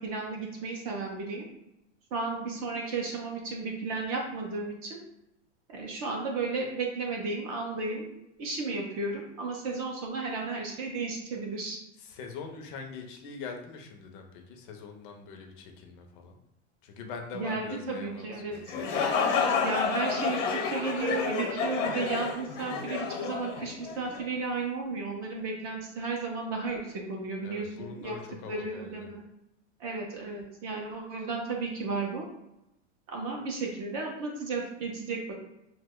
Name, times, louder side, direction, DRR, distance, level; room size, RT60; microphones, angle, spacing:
voice 1, 0.0-1.5 2.1-5.0 5.7-8.1 8.4-11.8 17.3-19.1 19.6-28.2 28.5-29.2 29.8-32.2 33.1-35.3, right 3 dB, 35° right, 0 dB, 0.4 m, -34 dB
voice 2, 12.0-16.4 16.8-18.8 27.4-29.1, left 5 dB, 45° left, 3 dB, 0.5 m, -43 dB
sound 1, 18.5-24.2, left 5 dB, 90° left, 0.9 m, -30 dB
2.8 x 2.1 x 3.5 m, 0.87 s
supercardioid pair, 160°, 37 cm